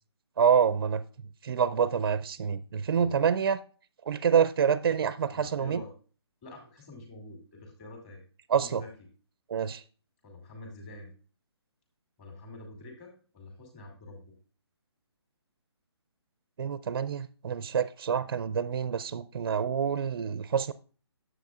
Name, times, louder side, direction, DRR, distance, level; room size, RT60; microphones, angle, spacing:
voice 1, 0.4-1.0 1.4-3.6 4.0-5.8 8.5-8.8 9.5-9.8 16.6-20.7, right 7 dB, 55° right, 0.4 m, -27 dB
voice 2, 5.3-5.9 6.4-8.2 8.5-8.9 10.2-11.1 12.2-14.3, left 2 dB, 25° left, 2.4 m, -47 dB
9.3 x 7.6 x 2.4 m
hypercardioid pair, 155°, 14 cm